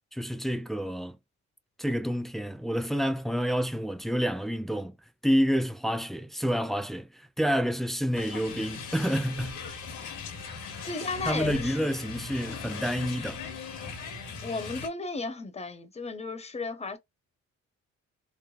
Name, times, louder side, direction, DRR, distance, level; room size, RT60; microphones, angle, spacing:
voice 1, 0.1-1.2 1.8-5.0 5.2-9.6 11.3-13.4, equal, ahead, 0.3 m, -29 dB
sound 1, 8.1-14.9, left 5 dB, 80° left, 1.1 m, -39 dB
voice 2, 10.9-11.9 14.4-17.0, left 3 dB, 20° left, 0.7 m, -34 dB
3.2 x 2.1 x 2.3 m
cardioid pair, 90°, 30 cm